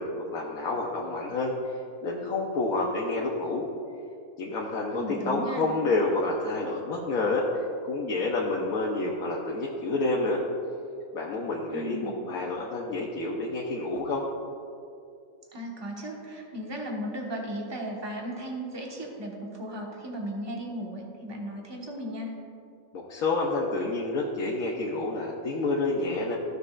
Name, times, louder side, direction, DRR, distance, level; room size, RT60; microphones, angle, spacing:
voice 1, 0.0-1.5 2.0-3.7 4.4-7.4 7.8-10.4 11.1-14.2 22.9-26.3, left 2 dB, 80° left, -3 dB, 1.3 m, -29 dB
voice 2, 4.9-5.7 11.7-12.2 15.5-22.3, equal, 20° right, -2 dB, 1.3 m, -36 dB
15.0 x 6.6 x 2.4 m, 2.6 s
omnidirectional pair, 1.5 m